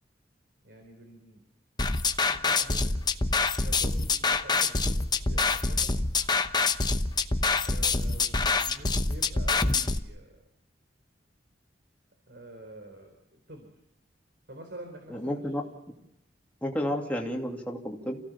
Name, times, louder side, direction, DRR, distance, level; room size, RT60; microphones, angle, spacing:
voice 1, 0.6-1.4 2.3-3.0 3.6-5.0 5.3-5.9 7.6-10.4 12.3-13.7 14.5-15.5, right 1 dB, 65° right, 4 dB, 3.9 m, -47 dB
sound 1, 1.8-10.0, left 3 dB, 25° left, 0.9 m, -26 dB
voice 2, 15.1-15.6 16.6-18.2, equal, 10° left, 0 dB, 2.7 m, -31 dB
28.0 x 16.5 x 7.1 m, 0.82 s
head